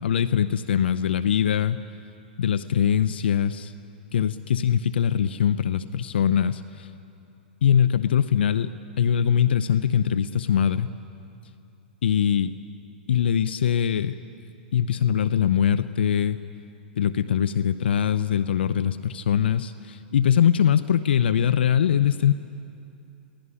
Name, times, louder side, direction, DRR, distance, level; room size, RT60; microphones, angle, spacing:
voice 1, 0.0-1.8 2.4-3.7 4.1-6.9 7.6-8.7 9.0-10.9 12.0-12.5 13.1-14.2 14.7-16.4 17.0-22.3, left 9 dB, 70° left, 13 dB, 0.7 m, -22 dB
27.5 x 18.0 x 9.9 m, 2.6 s
hypercardioid pair, 110°, 6 cm